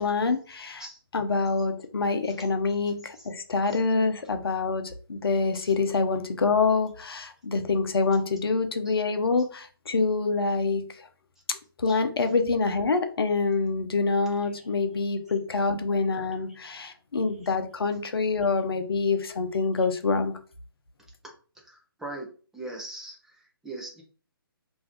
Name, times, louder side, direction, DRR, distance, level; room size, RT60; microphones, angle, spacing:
voice 1, 0.0-0.9 1.1-4.8 5.1-11.1 11.5-20.3, left 4 dB, 75° left, 7 dB, 0.6 m, -26 dB
voice 2, 21.6-22.3 22.5-24.0, right 2 dB, 5° right, -1 dB, 0.4 m, -41 dB
2.6 x 2.3 x 3.4 m, 0.39 s
figure-of-eight pair, 140°, 13 cm